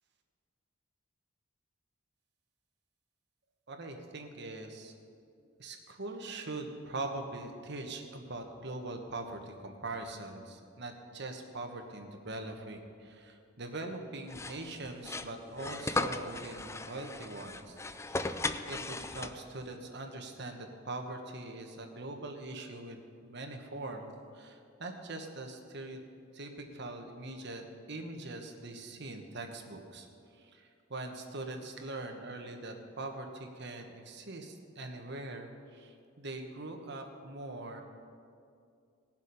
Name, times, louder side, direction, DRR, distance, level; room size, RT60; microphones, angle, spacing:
voice 1, 3.7-4.9 5.6-18.3 18.7-26.0 26.3-30.1 30.3-37.8, right 2 dB, 60° right, 4 dB, 1.3 m, -42 dB
sound 1, 14.3-19.6, left 3 dB, 15° left, 0.4 m, -37 dB
18.5 x 7.4 x 5.5 m, 2.4 s
head